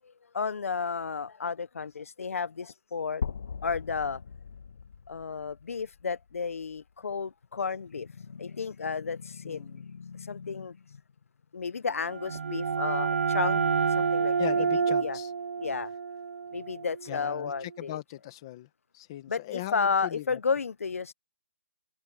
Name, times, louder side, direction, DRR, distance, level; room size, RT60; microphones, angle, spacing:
voice 1, 0.0-3.2 3.6-4.2 5.1-11.0 11.5-13.6 13.9-15.2 15.6-15.9 16.5-18.0 19.3-21.1, left 5 dB, 75° left, 0.7 m, -33 dB
sound 1, 3.2-7.2, left 6 dB, 50° left, 1.4 m, -40 dB
voice 2, 9.4-9.8 13.6-13.7 14.4-15.3 17.1-18.7 18.9-20.4, left 16 dB, 20° left, 1.2 m, -39 dB
sound 2, 11.9-17.5, right 6 dB, 65° right, 0.5 m, -29 dB
hypercardioid pair, 175°, 8 cm